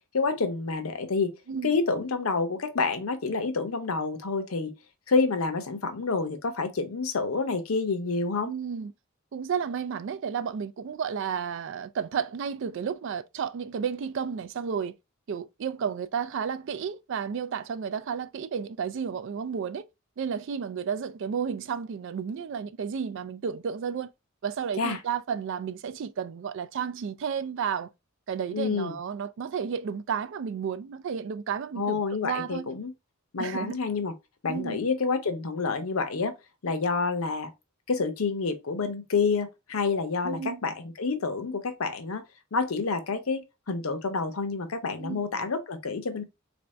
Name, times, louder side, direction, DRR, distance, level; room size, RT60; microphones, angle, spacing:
voice 1, 0.1-1.3 1.6-4.7 5.1-8.5 24.8-25.0 28.5-28.9 31.8-32.9 33.3-34.1 34.4-36.3 36.6-37.5 37.9-42.2 42.5-46.2, left 4 dB, 90° left, 0.7 m, -28 dB
voice 2, 8.4-8.9 9.3-14.9 15.3-19.9 20.2-24.1 24.4-27.9 28.3-32.7 33.4-33.8 34.5-34.8 40.2-40.6 45.0-45.2, right 7 dB, 60° right, 0.3 m, -32 dB
3.5 x 2.6 x 3.1 m
head